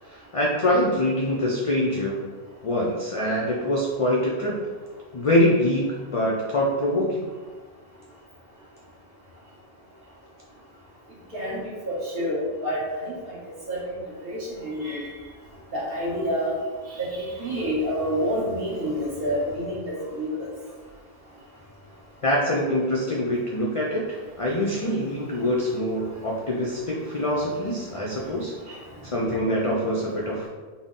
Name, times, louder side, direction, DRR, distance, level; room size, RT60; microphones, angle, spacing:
voice 1, 0.1-2.2 2.6-4.5 5.1-7.2 22.2-28.5 29.0-30.5, left 1 dB, 60° left, -3 dB, 0.3 m, -24 dB
voice 2, 11.3-13.9 14.3-15.1 15.7-16.5 17.0-20.5 28.7-28.8, equal, 60° right, -5 dB, 1.2 m, -28 dB
3.9 x 2.0 x 3.6 m, 1.4 s
omnidirectional pair, 1.1 m